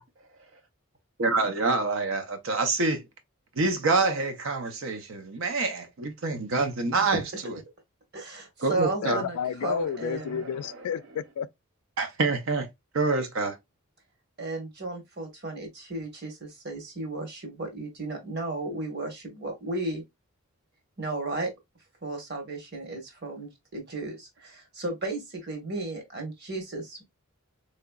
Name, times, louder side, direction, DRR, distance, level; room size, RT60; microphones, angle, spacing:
voice 1, 1.2-3.0 3.6-7.6 8.6-9.2 12.0-12.7 12.9-13.6, right 3 dB, 65° right, 0.6 m, -26 dB
voice 2, 8.1-10.4 14.4-20.0 21.0-21.5 22.0-27.0, right 2 dB, 50° right, 1.4 m, -34 dB
voice 3, 9.0-11.5, left 8 dB, 90° left, 0.3 m, -31 dB
3.8 x 3.1 x 2.3 m
head